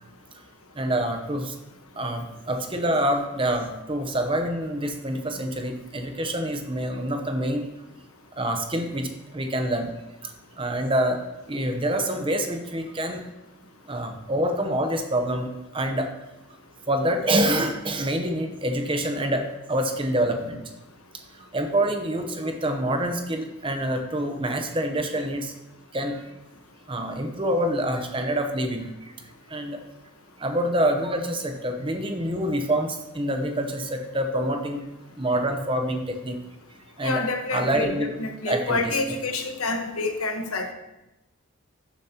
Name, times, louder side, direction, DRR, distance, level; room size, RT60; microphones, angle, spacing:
voice 1, 0.8-1.6 2.0-7.7 8.4-9.9 10.2-11.2 11.5-13.2 13.9-16.1 16.9-20.6 21.4-25.5 25.9-26.2 26.9-29.1 29.5-29.8 30.4-34.8 35.2-36.4 37.0-37.2 37.5-38.1 38.5-38.9, right 1 dB, 25° right, 5 dB, 0.8 m, -26 dB
voice 2, 37.0-40.7, left 3 dB, 85° left, 5 dB, 1.2 m, -28 dB
13.5 x 7.2 x 2.9 m, 0.97 s
head